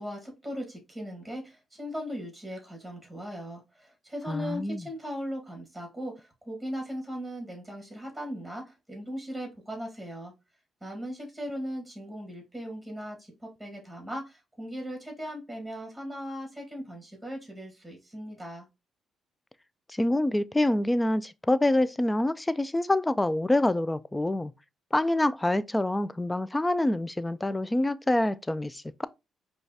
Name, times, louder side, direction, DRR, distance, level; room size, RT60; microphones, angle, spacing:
voice 1, 0.0-10.3 10.8-18.6, equal, 5° right, 1.6 m, -38 dB
voice 2, 4.3-4.9 19.9-24.5 24.9-29.1, left 1 dB, 10° left, 0.3 m, -26 dB
5.1 x 2.3 x 2.8 m
cardioid pair, 90°, 0 cm